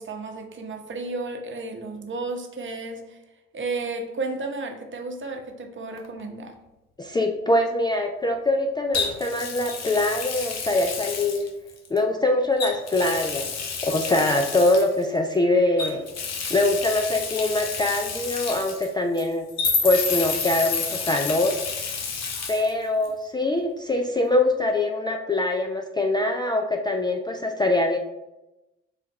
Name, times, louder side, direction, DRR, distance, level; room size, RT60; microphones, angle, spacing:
voice 1, 0.0-3.2 3.5-6.5, right 3 dB, 35° right, 3 dB, 0.8 m, -33 dB
Water tap faucet, 6.0-6.2 8.9-12.0 12.6-15.1 15.8-19.2 19.6-22.7 23.0-23.1 24.7-24.8, left 5 dB, 50° left, 0.8 m, -32 dB
voice 2, 7.0-11.5 11.9-16.1 16.5-19.5 19.8-21.6 22.5-28.0, left 2 dB, 15° left, 3 dB, 0.4 m, -23 dB
sound 1, 17.1-17.2 17.4-17.6 17.9-18.0 18.6-18.9 19.2-21.5, left 4 dB, 85° left, 0.9 m, -27 dB
3.7 x 2.5 x 4.4 m, 0.97 s
hypercardioid pair, 50°, 33 cm